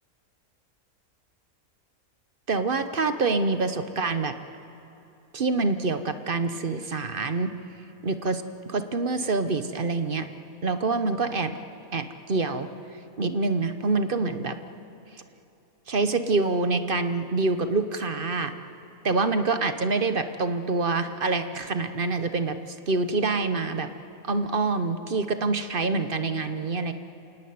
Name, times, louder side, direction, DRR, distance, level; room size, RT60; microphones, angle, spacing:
voice 1, 2.5-4.3 5.3-7.5 8.0-10.3 10.6-11.6 11.9-12.7 13.2-14.6 15.9-18.5 19.0-22.6 22.9-23.9 24.2-26.9, right 3 dB, 40° right, 9 dB, 1.0 m, -26 dB
27.5 x 17.0 x 9.5 m, 2.9 s
omnidirectional pair, 1.5 m